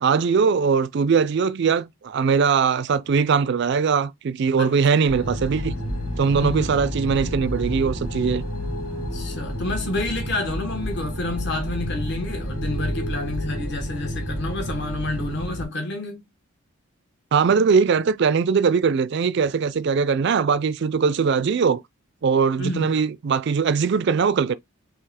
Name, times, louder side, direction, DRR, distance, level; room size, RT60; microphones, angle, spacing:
voice 1, 0.0-5.7 6.2-8.4 17.3-21.8 22.2-24.5, right 5 dB, 50° right, 0.3 m, -21 dB
sound 1, 5.1-15.6, equal, 80° left, 2.2 m, -30 dB
voice 2, 6.3-6.7 8.9-16.2 22.6-22.9, left 2 dB, 50° left, 1.4 m, -29 dB
3.9 x 2.6 x 4.2 m
head